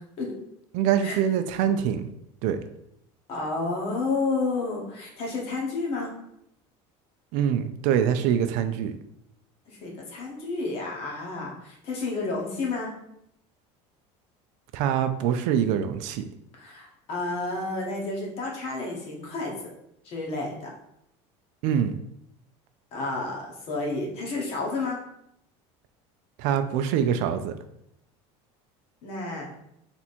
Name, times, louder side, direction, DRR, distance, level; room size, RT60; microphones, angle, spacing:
voice 1, 0.7-2.1 2.4-2.6 7.3-9.0 14.7-16.2 21.6-21.9 26.4-27.5, right 9 dB, 65° right, 10 dB, 0.4 m, -24 dB
voice 2, 3.3-6.1 9.7-12.9 16.5-19.7 20.0-20.7 22.9-25.0 29.0-29.5, left 3 dB, 45° left, -1 dB, 1.3 m, -31 dB
3.4 x 2.9 x 4.2 m, 0.77 s
cardioid pair, 155°, 14 cm